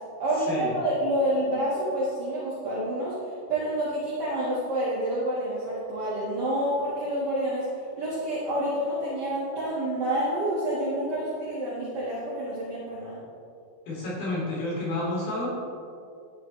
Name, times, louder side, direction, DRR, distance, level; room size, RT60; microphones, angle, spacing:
voice 1, 0.2-3.2 3.5-7.7 8.0-13.2, right 1 dB, 40° right, -7 dB, 1.7 m, -28 dB
voice 2, 13.9-15.5, left 2 dB, 80° left, -6 dB, 4.6 m, -30 dB
13.0 x 10.5 x 3.3 m, 2.6 s
omnidirectional pair, 4.1 m